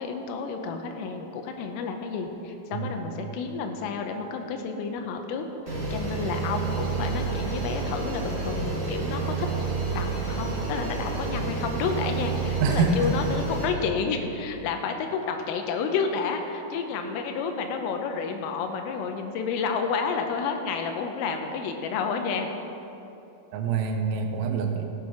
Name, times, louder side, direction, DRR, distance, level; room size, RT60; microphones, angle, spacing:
voice 1, 0.0-9.5 9.9-22.5, left 5 dB, 85° left, 4 dB, 3.4 m, -30 dB
sound 1, 5.7-13.7, right 4 dB, 45° right, 1.3 m, -29 dB
voice 2, 12.6-13.1 23.5-24.8, right 5 dB, 90° right, 4 dB, 3.7 m, -25 dB
15.0 x 8.8 x 4.5 m, 2.9 s
omnidirectional pair, 5.9 m